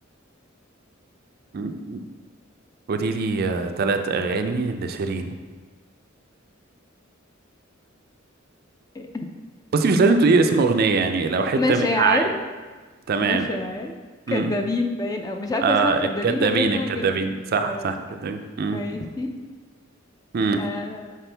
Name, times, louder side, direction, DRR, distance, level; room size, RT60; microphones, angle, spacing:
voice 1, 1.5-2.0 2.9-5.3 9.7-12.3 13.1-13.5 14.3-14.5 15.6-18.8 20.3-20.6, right 4 dB, 50° right, 7 dB, 0.4 m, -22 dB
voice 2, 8.9-9.3 11.6-12.3 13.2-14.0 14.3-17.2 17.7-18.0 18.7-19.3 20.6-21.2, left 2 dB, 20° left, 4 dB, 0.4 m, -27 dB
5.9 x 4.7 x 3.4 m, 1.4 s
head